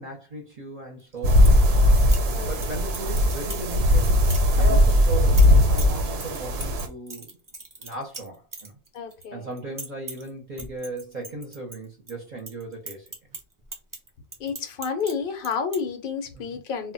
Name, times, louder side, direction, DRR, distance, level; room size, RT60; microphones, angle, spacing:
voice 1, 0.0-1.7 2.5-4.2 4.6-7.4 7.8-8.8 9.3-13.1 16.3-16.6, right 2 dB, 50° right, 0.8 m, -36 dB
sound 1, 1.0-1.6 2.0-2.7 2.9-3.7 4.0-4.4 4.9-9.2 9.5-10.3 10.6-12.1 12.4-15.1 15.4-15.8, right 2 dB, 30° right, 0.4 m, -39 dB
sound 2, 1.2-6.9, left 1 dB, 85° right, 0.8 m, -19 dB
voice 2, 2.3-2.8 4.6-4.8 8.9-9.5 14.4-16.9, left 6 dB, 65° left, 0.7 m, -31 dB
2.1 x 2.1 x 3.8 m
omnidirectional pair, 1.0 m